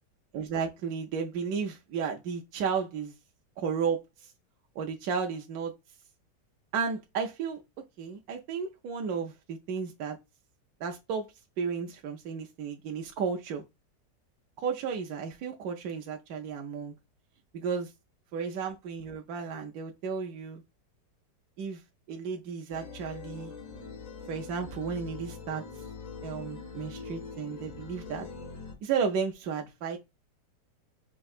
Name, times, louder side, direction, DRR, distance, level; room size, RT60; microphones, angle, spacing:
voice 1, 0.3-3.1 3.6-4.3 4.8-5.7 6.7-7.6 8.0-10.2 10.8-11.3 11.6-13.6 14.6-16.9 17.5-17.9 18.3-20.6 21.6-21.8 22.1-23.5 24.3-25.6 26.2-28.3 28.8-30.0, right 6 dB, 70° right, 1.0 m, -33 dB
sound 1, 22.7-28.7, left 5 dB, 80° left, 0.3 m, -43 dB
5.3 x 2.7 x 2.4 m
omnidirectional pair, 1.9 m